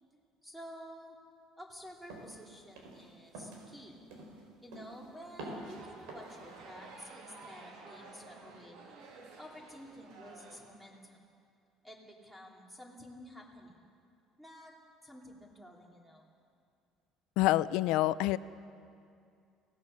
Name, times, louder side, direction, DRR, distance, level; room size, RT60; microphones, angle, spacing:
voice 1, 0.4-1.2 1.6-3.9 4.6-8.8 9.4-11.2 11.8-13.8 14.4-14.7 15.0-16.3, equal, 5° right, 0 dB, 2.7 m, -51 dB
sound 1, 2.1-2.4 2.8-3.1 3.3-3.7 4.1-4.4 4.7-5.1 5.4-5.7 6.1-6.4, right 2 dB, 90° right, 4.6 m, -46 dB
sound 2, 5.5-10.6, right 3 dB, 75° right, 3.3 m, -52 dB
voice 2, 17.4-18.4, left 16 dB, 75° left, 17 dB, 0.5 m, -27 dB
24.0 x 17.5 x 6.5 m, 2.4 s
cardioid pair, 160°, 0 cm